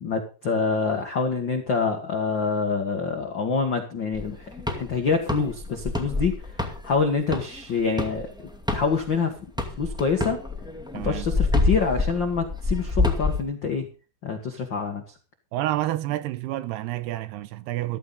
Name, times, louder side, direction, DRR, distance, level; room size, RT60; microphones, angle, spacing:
voice 1, 0.0-4.5 4.8-6.4 6.8-8.3 8.7-9.3 9.8-10.4 10.9-13.9 14.2-15.0, left 5 dB, 85° left, 1.0 m, -26 dB
sound 1, 4.1-9.2 9.6-13.4, left 2 dB, 5° right, 0.7 m, -27 dB
voice 2, 10.9-11.3 15.5-18.0, right 15 dB, 80° right, 2.9 m, -29 dB
14.0 x 14.0 x 4.0 m
omnidirectional pair, 4.8 m